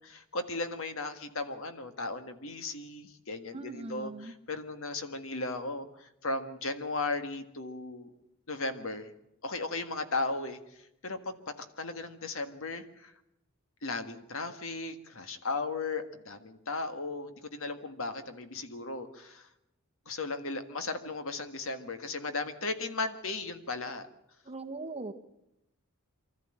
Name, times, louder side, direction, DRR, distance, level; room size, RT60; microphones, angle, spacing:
voice 1, 0.0-8.1 8.5-9.1 9.4-13.1 13.8-19.5 20.0-24.1, left 3 dB, 65° left, 9 dB, 1.7 m, -36 dB
voice 2, 3.5-4.3 24.5-25.1, right 2 dB, 25° right, 5 dB, 1.3 m, -40 dB
24.5 x 14.0 x 8.9 m, 0.85 s
head